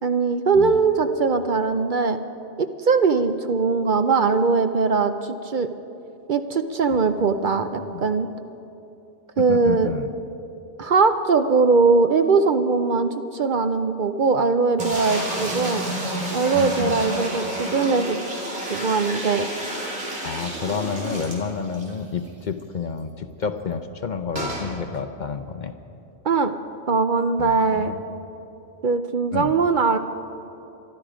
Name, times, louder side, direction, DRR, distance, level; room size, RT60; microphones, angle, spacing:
voice 1, 0.0-2.2 2.6-5.7 6.3-8.3 9.4-9.9 10.8-15.8 16.3-18.2 18.7-19.5 26.2-26.5 26.9-27.9 28.8-30.0, right 4 dB, 55° right, 9 dB, 0.7 m, -21 dB
voice 2, 6.9-7.6 7.9-8.0 9.4-10.1 16.5-17.0 20.2-25.7 27.4-28.0 29.3-29.5, left 6 dB, 50° left, 9 dB, 0.7 m, -30 dB
sound 1, 14.8-21.9 22.3-22.4 22.6-22.7 24.3-24.7, right 1 dB, 90° right, 3.0 m, -30 dB
22.5 x 13.0 x 5.0 m, 2.9 s
omnidirectional pair, 1.1 m